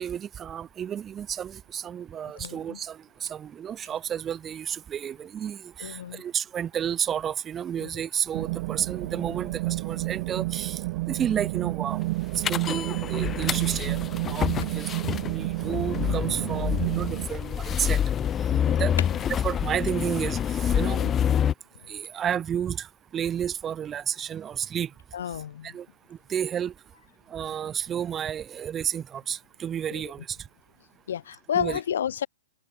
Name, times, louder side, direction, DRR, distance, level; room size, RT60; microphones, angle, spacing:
voice 1, 0.0-10.8 11.1-12.1 12.5-14.9 15.3-18.0 18.8-18.9 19.4-21.1 21.9-22.9 23.1-24.9 25.6-25.9 26.3-26.7 27.3-30.4 31.5-31.8, right 9 dB, 20° right, 1.8 m, -31 dB
voice 2, 2.4-2.8 5.8-6.2 7.8-7.9 18.6-19.2 20.9-21.4 25.1-25.8 29.9-30.0 31.1-32.3, left 9 dB, 70° left, 3.9 m, -31 dB
sound 1, 8.3-17.3, right 22 dB, 45° right, 1.1 m, -30 dB
sound 2, 12.4-21.5, left 9 dB, 20° left, 0.7 m, -27 dB
hypercardioid pair, 125°, 0 cm